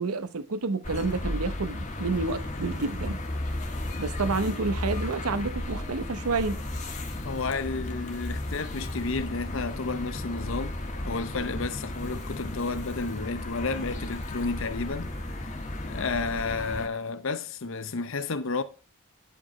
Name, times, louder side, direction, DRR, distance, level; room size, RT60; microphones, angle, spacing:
voice 1, 0.0-3.2 4.0-6.6, right 3 dB, 90° right, 0.8 m, -29 dB
sound 1, 0.8-16.9, left 1 dB, 35° left, 1.2 m, -34 dB
voice 2, 7.2-10.8 11.0-18.6, left 4 dB, 65° left, 0.7 m, -32 dB
9.7 x 5.1 x 4.3 m
head